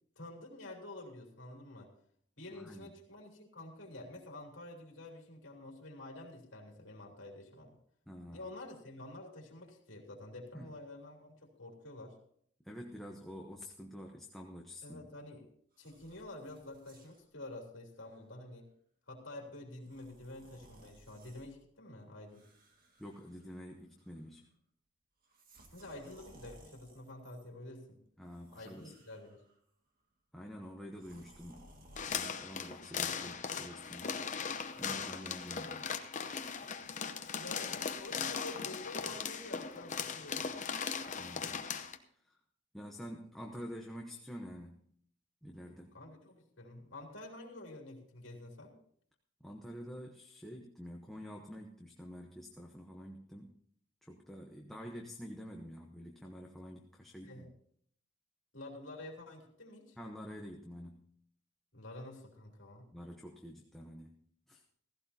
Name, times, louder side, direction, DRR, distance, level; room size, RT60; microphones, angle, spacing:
voice 1, 0.1-1.9 2.4-7.8 8.3-12.2 14.8-15.5 15.8-18.7 19.1-22.5 25.7-28.0 28.5-29.4 37.3-40.5 45.9-48.8 57.2-57.5 58.5-60.0 61.7-62.9, left 2 dB, 55° left, 0 dB, 3.3 m, -49 dB
voice 2, 2.5-2.9 8.1-8.5 10.5-10.6 12.6-15.1 23.0-24.5 28.2-29.0 30.3-31.7 32.1-34.2 34.8-35.9 41.2-41.6 42.1-42.4 42.7-44.9 45.4-46.0 49.4-53.6 54.0-57.5 60.0-61.1 62.9-64.1 64.5-64.6, equal, ahead, 0 dB, 0.9 m, -48 dB
sound 1, 15.7-17.3 18.0-18.2 19.8-21.5 22.3-23.7 24.0-24.4 25.2-27.5 28.2-29.6 30.9-32.2, right 1 dB, 40° right, 2.0 m, -60 dB
sound 2, 32.0-42.0, left 6 dB, 35° left, 0.8 m, -39 dB
16.5 x 16.0 x 2.8 m, 0.64 s
head